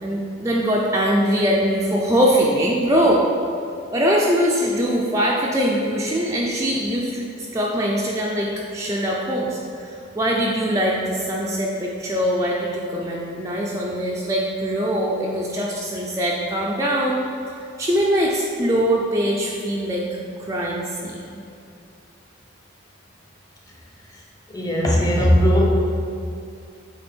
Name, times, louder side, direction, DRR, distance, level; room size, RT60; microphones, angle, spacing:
voice 1, 0.0-3.2 3.9-17.2 17.5-20.1 20.4-21.4, equal, 15° right, -4 dB, 0.4 m, -22 dB
voice 2, 24.5-25.6, equal, 15° left, -2 dB, 0.8 m, -17 dB
8.4 x 3.4 x 4.5 m, 2.6 s
head